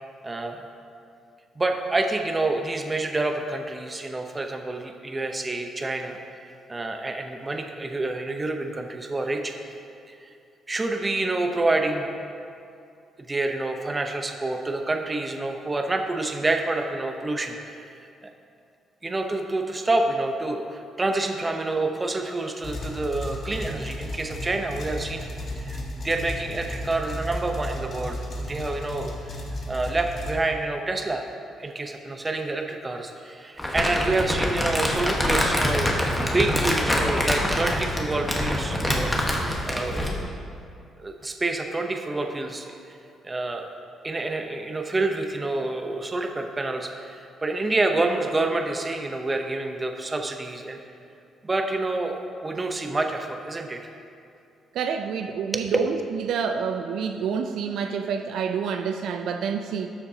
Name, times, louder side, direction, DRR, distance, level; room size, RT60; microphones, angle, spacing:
voice 1, 0.2-0.6 1.6-6.2 6.7-9.5 10.1-10.3 10.7-12.1 13.3-17.8 18.2-18.3 19.0-25.2 25.6-29.4 29.7-31.2 31.6-39.1 39.6-40.3 41.0-43.0 43.2-43.7 44.0-50.8 51.4-53.8 55.5-55.8, right 2 dB, 25° right, 4 dB, 0.8 m, -28 dB
sound 1, 22.6-30.3, left 1 dB, 50° left, 1.3 m, -34 dB
Crumpling crinkling, 33.6-40.2, left 1 dB, 15° left, 1.2 m, -25 dB
voice 2, 54.7-55.9 56.3-59.9, right 6 dB, 80° right, 6 dB, 0.4 m, -28 dB
12.5 x 6.8 x 2.8 m, 2.5 s
cardioid pair, 90°, 0 cm